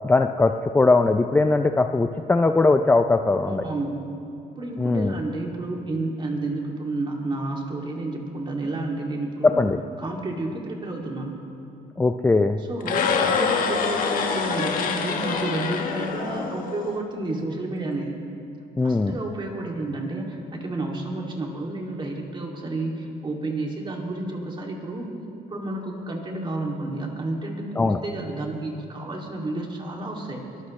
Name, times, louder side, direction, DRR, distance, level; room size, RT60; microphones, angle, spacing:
voice 1, 0.0-3.7 4.8-5.2 9.4-9.8 12.0-12.6 18.8-19.2 27.8-28.0, left 3 dB, 10° left, 6 dB, 0.5 m, -20 dB
voice 2, 3.5-4.0 4.6-9.6 10.0-11.3 12.6-18.2 18.8-25.1 25.5-30.5, right 2 dB, 30° right, 0 dB, 2.6 m, -30 dB
sound 1, 12.8-17.0, left 6 dB, 55° left, 1.6 m, -25 dB
23.0 x 18.5 x 3.2 m, 2.7 s
cardioid pair, 110°, 17 cm